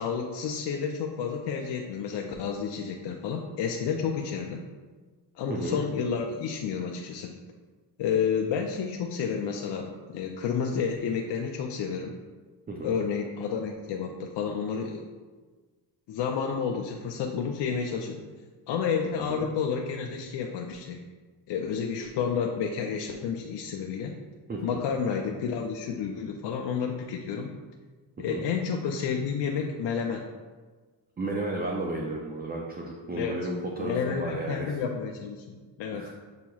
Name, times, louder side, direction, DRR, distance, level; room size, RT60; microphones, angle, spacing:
voice 1, 0.0-4.6 5.4-7.4 8.0-12.1 12.8-15.1 16.1-18.2 18.7-21.0 21.5-24.2 24.6-27.5 28.2-30.2 33.2-33.4 33.8-36.1, left 6 dB, 60° left, 2 dB, 0.5 m, -30 dB
voice 2, 5.5-5.8 12.7-13.0 19.3-19.5 24.5-24.8 28.2-28.4 31.2-34.8 35.9-36.1, right 2 dB, 20° right, -1 dB, 0.4 m, -33 dB
7.1 x 2.9 x 2.3 m, 1.4 s
cardioid pair, 90°, 48 cm